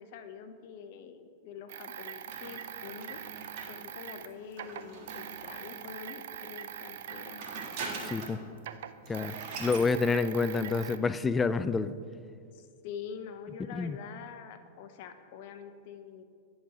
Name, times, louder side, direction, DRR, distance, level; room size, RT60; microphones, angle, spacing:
voice 1, 0.0-3.2 3.7-7.5 12.5-16.2, left 7 dB, 60° left, 8 dB, 0.6 m, -45 dB
sound 1, 1.7-8.3 8.6-11.0, right 10 dB, 70° right, 0.4 m, -43 dB
sound 2, 2.3-6.0 6.9-8.5 8.7-8.8 9.0-9.9, right 3 dB, 55° right, 1.4 m, -43 dB
voice 2, 8.0-8.4 9.1-11.9 13.7-14.0, left 4 dB, 15° left, 13 dB, 0.3 m, -28 dB
10.0 x 4.1 x 4.8 m, 2.2 s
hypercardioid pair, 110°, 0 cm